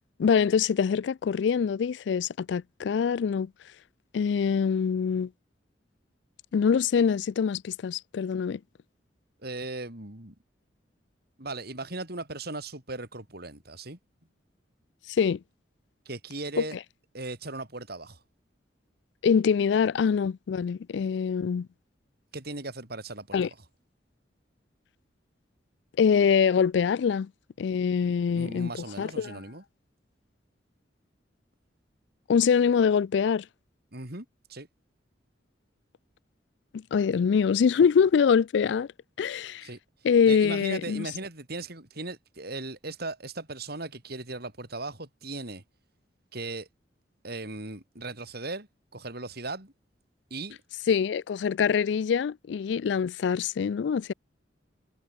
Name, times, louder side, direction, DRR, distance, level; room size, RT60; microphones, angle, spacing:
voice 1, 0.2-3.5 4.1-5.3 6.5-8.6 15.1-15.4 16.6-16.7 19.2-21.7 23.3-23.5 26.0-27.3 27.6-28.7 29.0-29.4 32.3-33.5 36.7-38.9 39.2-39.7 40.0-41.1 50.9-54.1, left 6 dB, 70° left, 0.3 m, -24 dB
voice 2, 9.4-10.3 11.4-14.0 16.0-16.8 17.1-18.2 22.3-23.5 28.0-29.6 33.9-34.7 39.6-39.8 40.3-45.6 46.3-46.7 47.2-49.7 50.3-50.6, right 2 dB, 60° right, 5.1 m, -38 dB
head